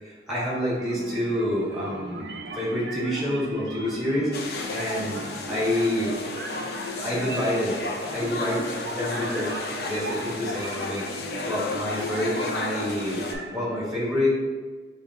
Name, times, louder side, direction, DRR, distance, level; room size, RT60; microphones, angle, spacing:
voice 1, 0.0-6.1 7.0-7.8 8.1-11.1 11.5-13.2 13.5-14.3, left 1 dB, ahead, -6 dB, 1.2 m, -28 dB
sound 1, 0.8-13.8, right 2 dB, 70° right, 0.5 m, -38 dB
sound 2, 4.3-13.3, left 3 dB, 60° left, 0.4 m, -33 dB
6.5 x 2.9 x 2.4 m, 1.4 s
head